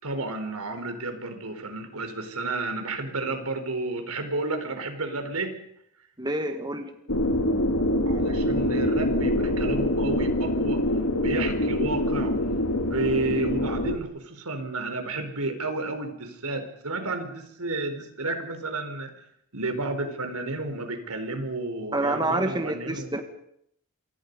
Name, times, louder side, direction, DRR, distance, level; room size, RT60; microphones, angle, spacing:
voice 1, 0.0-5.6 8.1-10.8 11.2-12.4 12.8-19.1 19.5-23.1, right 2 dB, 85° right, 7 dB, 4.2 m, -31 dB
voice 2, 6.2-6.9 21.9-23.2, right 2 dB, 20° right, 6 dB, 1.9 m, -27 dB
sound 1, 7.1-14.0, left 1 dB, 70° left, 2.0 m, -25 dB
28.0 x 24.5 x 5.4 m, 0.73 s
head